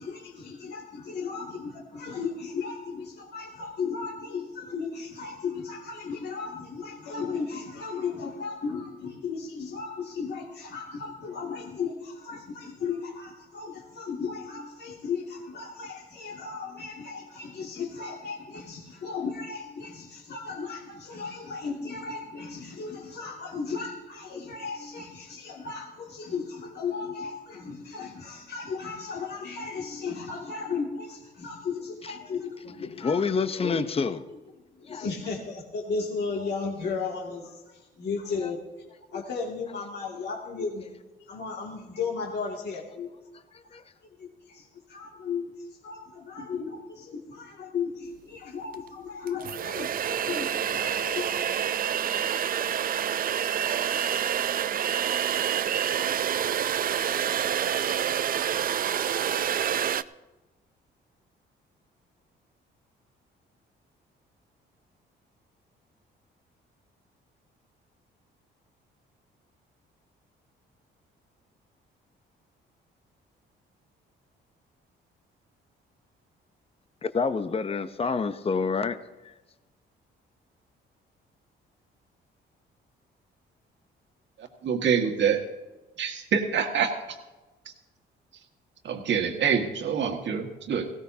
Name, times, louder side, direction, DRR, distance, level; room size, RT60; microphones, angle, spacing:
voice 1, 0.0-33.8 34.3-34.4 34.7-38.6 39.1-40.9 41.2-43.1 43.7-43.8 44.2-51.3, left 5 dB, 55° left, 2.3 m, -35 dB
voice 2, 33.0-34.2 34.9-35.0 43.7-43.8 77.1-79.0 79.2-79.3, left 5 dB, 30° left, 0.8 m, -27 dB
sound 1, 48.7-48.8 49.3-60.0, right 9 dB, 45° right, 0.5 m, -27 dB
voice 3, 84.6-85.4 86.0-86.9 88.8-90.9, right 7 dB, 65° right, 1.8 m, -26 dB
18.5 x 16.5 x 2.8 m
cardioid pair, 90°, 20 cm